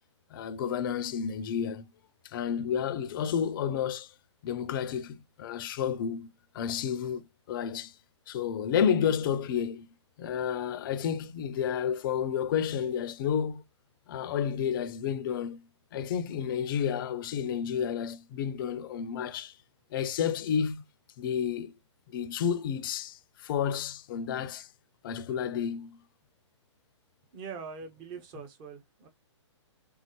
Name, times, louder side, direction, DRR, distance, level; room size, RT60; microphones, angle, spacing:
voice 1, 0.3-1.8 2.2-4.1 4.4-6.3 6.5-7.9 8.3-9.9 10.2-13.6 14.1-19.6 19.9-20.8 21.2-21.7 22.1-24.7 25.0-26.0, left 8 dB, 45° left, 0.6 m, -31 dB
voice 2, 16.0-16.4 16.8-17.0 18.3-18.4 27.3-29.1, right 5 dB, 30° right, 1.4 m, -44 dB
4.4 x 3.5 x 3.1 m
hypercardioid pair, 135°, 16 cm